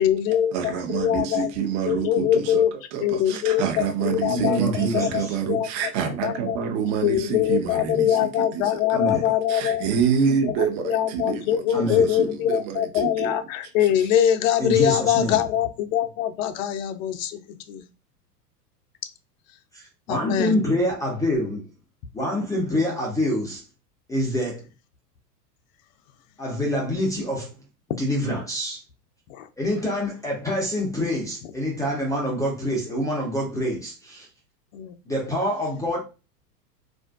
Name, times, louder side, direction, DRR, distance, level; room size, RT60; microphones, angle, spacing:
voice 1, 0.0-1.5 1.9-2.7 3.0-5.7 6.2-6.6 7.0-9.9 10.5-10.6 10.8-17.4 17.7-17.9 20.1-20.5 29.3-29.5 34.7-34.9, left 10 dB, 55° left, 0.6 m, -23 dB
voice 2, 0.5-2.6 2.9-13.4 13.8-14.1, right 7 dB, 45° right, 0.8 m, -27 dB
voice 3, 4.2-5.3 8.9-9.3 11.7-12.1 14.6-15.4 19.7-21.7 22.1-23.6 24.1-24.6 26.4-27.5 28.0-28.8 29.6-34.3 35.1-36.0, left 1 dB, 5° left, 0.5 m, -26 dB
3.6 x 2.5 x 2.3 m
hypercardioid pair, 100°, 49 cm